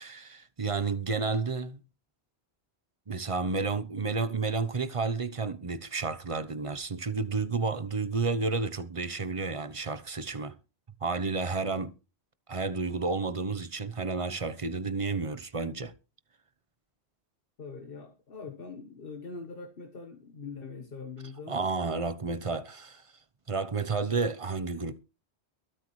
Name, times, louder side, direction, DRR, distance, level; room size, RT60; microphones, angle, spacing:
voice 1, 0.0-1.8 3.1-10.5 11.0-11.9 12.5-15.9 21.5-23.0 23.5-25.0, right 4 dB, 30° right, 0.9 m, -31 dB
voice 2, 17.6-21.6 22.3-22.5, left 4 dB, 55° left, 1.5 m, -43 dB
22.5 x 8.2 x 3.2 m
omnidirectional pair, 1.1 m